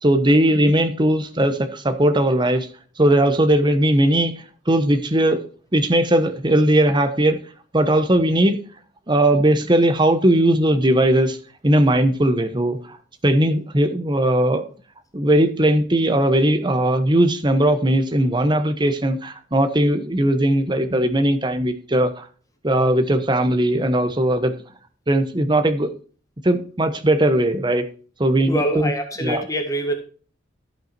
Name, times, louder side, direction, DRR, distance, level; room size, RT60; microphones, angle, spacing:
voice 1, 0.0-2.7 3.0-5.4 5.7-7.4 7.7-8.6 9.1-11.4 11.6-13.0 13.2-14.6 15.1-22.3 22.6-24.5 25.1-25.9 26.4-27.8 28.2-28.9 29.2-29.4, right 1 dB, 25° right, 9 dB, 1.1 m, -18 dB
voice 2, 28.5-29.9, right 1 dB, 20° left, 5 dB, 1.7 m, -24 dB
13.5 x 5.8 x 4.4 m, 0.39 s
head